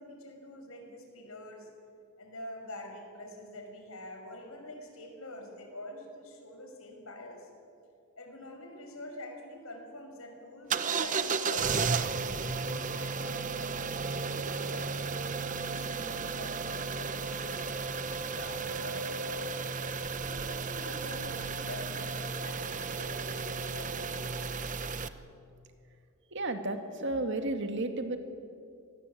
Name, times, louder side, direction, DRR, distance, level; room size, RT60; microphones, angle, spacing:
voice 1, 0.0-1.7 2.2-7.5 8.2-14.9 15.5-19.6 20.2-24.9, left 1 dB, 70° left, 4 dB, 5.7 m, -46 dB
sound 1, 10.7-25.1, right 5 dB, 35° right, 0.9 m, -34 dB
voice 2, 26.3-28.2, right 2 dB, 55° right, 6 dB, 2.4 m, -32 dB
27.5 x 20.0 x 8.7 m, 2.5 s
head